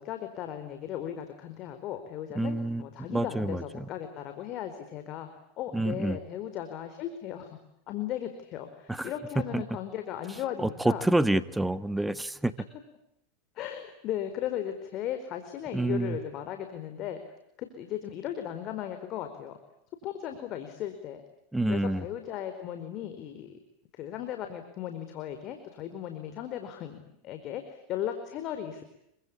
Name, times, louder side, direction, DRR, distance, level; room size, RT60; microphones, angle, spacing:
voice 1, 0.0-5.3 5.6-7.5 7.9-11.0 13.5-17.2 17.6-19.6 20.0-21.2 21.7-23.5 24.0-28.8, left 10 dB, 45° left, 7 dB, 4.6 m, -36 dB
voice 2, 2.3-3.9 5.7-6.2 8.9-9.1 9.5-9.6 10.6-12.5 15.7-16.2 21.5-22.0, right 1 dB, 5° right, 14 dB, 1.6 m, -28 dB
27.5 x 25.0 x 8.7 m, 0.78 s
hypercardioid pair, 105°, 0 cm